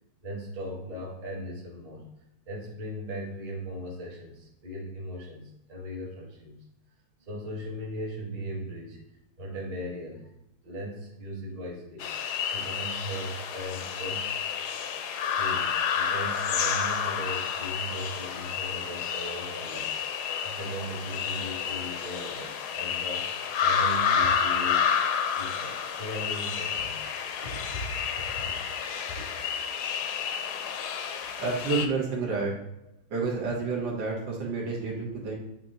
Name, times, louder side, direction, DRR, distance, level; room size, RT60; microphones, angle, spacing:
voice 1, 0.2-2.1 2.5-6.6 7.2-9.0 9.4-10.3 10.6-12.1 12.5-14.4 15.2-23.3 23.6-24.9 25.3-27.0 27.4-28.5 29.1-29.2, equal, 25° right, -3 dB, 1.1 m, -38 dB
sound 1, 12.0-31.9, left 7 dB, 70° left, 1.0 m, -30 dB
voice 2, 31.4-32.5 33.1-35.3, right 4 dB, 70° right, -3 dB, 2.1 m, -29 dB
8.7 x 2.9 x 3.8 m, 0.87 s
omnidirectional pair, 2.1 m